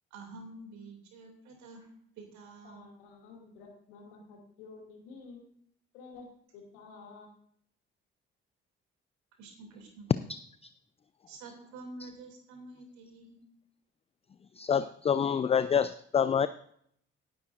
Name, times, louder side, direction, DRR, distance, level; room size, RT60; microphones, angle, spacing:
voice 1, 0.1-1.9 2.2-2.9 9.4-10.1 11.3-13.4, right 3 dB, 65° right, 3 dB, 2.8 m, -48 dB
voice 2, 2.6-5.5 5.9-6.3 6.5-7.3, left 4 dB, 70° left, 0 dB, 2.6 m, -51 dB
voice 3, 14.6-16.5, left 7 dB, 20° left, 15 dB, 0.4 m, -27 dB
17.5 x 10.0 x 2.6 m, 0.66 s
figure-of-eight pair, 40°, 30 cm